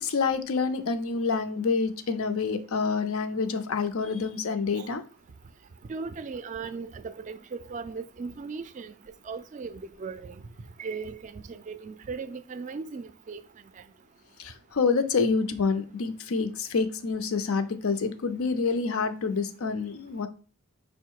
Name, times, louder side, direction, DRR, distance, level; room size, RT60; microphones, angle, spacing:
voice 1, 0.0-5.0 14.4-20.3, left 4 dB, 85° left, 0.6 m, -27 dB
voice 2, 5.9-8.9 9.3-10.4 10.8-13.4, right 4 dB, 35° right, 0.3 m, -37 dB
5.5 x 2.1 x 4.5 m
head